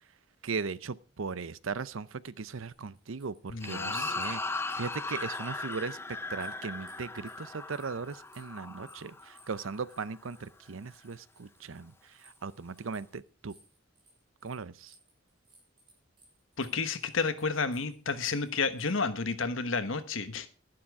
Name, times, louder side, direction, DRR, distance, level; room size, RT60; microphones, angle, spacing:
voice 1, 0.4-6.0 6.3-13.5 14.4-14.9, right 5 dB, 80° right, 0.7 m, -38 dB
sound 1, 2.7-5.9 6.3-14.6 14.9-19.0, right 2 dB, 25° right, 6.4 m, -62 dB
voice 2, 3.5-4.1 16.6-20.5, left 4 dB, 75° left, 1.2 m, -31 dB
sound 2, 3.6-10.1, left 3 dB, 10° left, 0.6 m, -38 dB
11.5 x 11.5 x 4.8 m
head